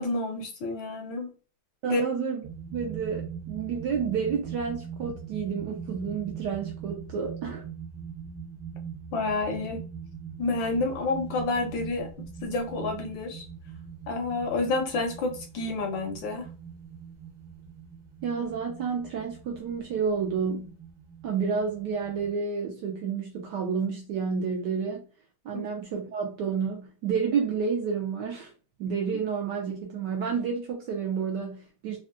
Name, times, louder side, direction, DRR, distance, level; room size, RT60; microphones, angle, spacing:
voice 1, 0.0-1.3 1.9-2.0 9.1-9.8 10.4-12.1 12.4-13.4 14.1-16.5 25.5-25.6, left 3 dB, 75° left, 1.2 m, -29 dB
voice 2, 1.8-2.4 2.7-7.6 18.2-20.8 21.2-25.0 25.4-28.5 28.8-32.0, right 6 dB, 75° right, 1.0 m, -30 dB
sound 1, 2.4-22.3, right 7 dB, 40° right, 1.0 m, -42 dB
3.4 x 2.2 x 2.5 m
omnidirectional pair, 2.3 m